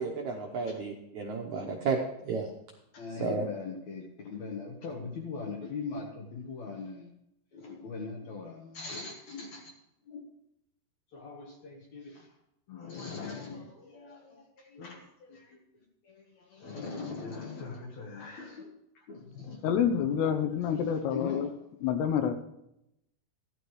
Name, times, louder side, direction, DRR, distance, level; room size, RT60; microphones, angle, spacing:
voice 1, 0.0-2.0 2.2-2.5 3.2-3.4, right 5 dB, 75° right, 1 dB, 1.7 m, -32 dB
voice 2, 2.9-7.1 7.5-9.7 10.1-10.2 11.1-12.3 12.7-15.6 16.0-18.7 19.0-19.7 20.6-21.5, left 4 dB, 60° left, 1 dB, 2.0 m, -41 dB
voice 3, 19.6-21.5 21.8-22.4, left 8 dB, 80° left, 7 dB, 2.9 m, -28 dB
15.5 x 12.0 x 3.2 m, 0.82 s
omnidirectional pair, 4.8 m